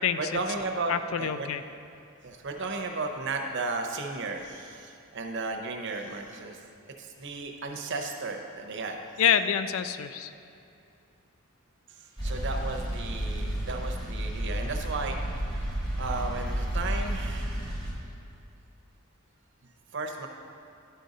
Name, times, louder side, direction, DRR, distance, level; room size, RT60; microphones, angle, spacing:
voice 1, 0.2-0.9 1.2-1.5 2.2-6.6 7.0-9.0 11.9-17.9 19.9-20.3, right 3 dB, 55° right, 4 dB, 0.7 m, -34 dB
voice 2, 0.9-1.6 9.2-10.3, left 8 dB, 65° left, 12 dB, 0.3 m, -26 dB
sound 1, 12.2-17.9, right 1 dB, 20° left, 1.6 m, -31 dB
11.0 x 5.1 x 4.0 m, 2.7 s
head